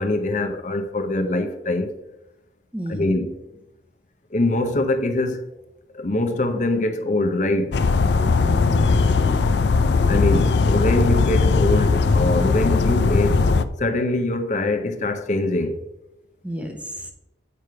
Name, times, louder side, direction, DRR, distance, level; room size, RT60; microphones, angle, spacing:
voice 1, 0.0-1.9 2.9-3.4 4.3-5.5 5.9-7.8 10.1-13.5 13.8-15.8, left 1 dB, 45° left, 0.7 m, -23 dB
voice 2, 2.7-3.2 8.2-8.9 9.2-9.4 16.4-17.1, equal, 5° right, 0.8 m, -32 dB
sound 1, 7.7-13.6, left 4 dB, 75° left, 0.4 m, -19 dB
8.4 x 4.9 x 4.7 m
head